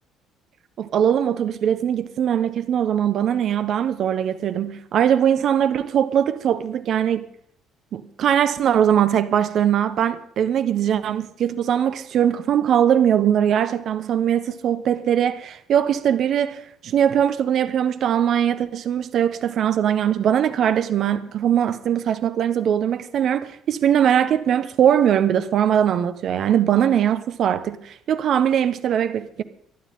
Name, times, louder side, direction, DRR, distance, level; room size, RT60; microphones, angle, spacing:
voice 1, 0.8-7.2 7.9-29.4, right 9 dB, 60° right, 1.2 m, -21 dB
24.0 x 12.0 x 3.8 m
hypercardioid pair, 60°, 0 cm